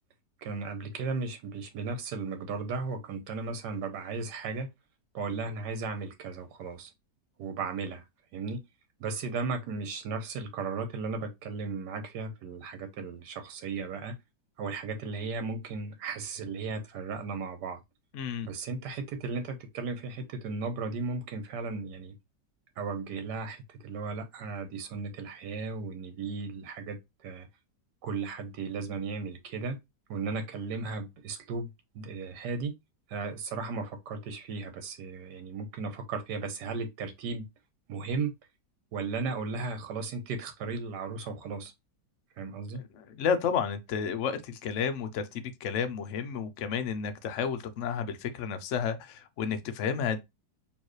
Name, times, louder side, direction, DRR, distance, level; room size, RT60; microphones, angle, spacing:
voice 1, 0.4-4.7 5.1-6.9 7.4-8.0 8.3-8.6 9.0-14.2 14.6-17.8 18.4-22.1 22.8-27.5 28.0-29.8 30.1-31.7 31.9-32.7 33.1-37.5 37.9-38.3 38.9-41.7 42.4-42.8, right 4 dB, 75° right, 1.5 m, -35 dB
voice 2, 18.1-18.5 42.9-50.2, left 7 dB, 65° left, 0.7 m, -31 dB
4.4 x 3.1 x 3.1 m
omnidirectional pair, 1.9 m